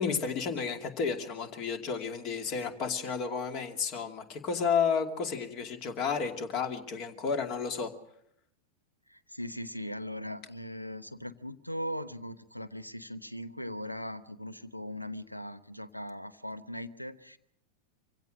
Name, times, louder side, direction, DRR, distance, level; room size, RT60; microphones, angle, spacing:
voice 1, 0.0-7.9, left 6 dB, 40° left, 7 dB, 2.4 m, -32 dB
voice 2, 9.1-17.4, equal, 90° left, 14 dB, 0.9 m, -39 dB
25.5 x 16.5 x 6.4 m, 0.73 s
figure-of-eight pair, 90°, 0 cm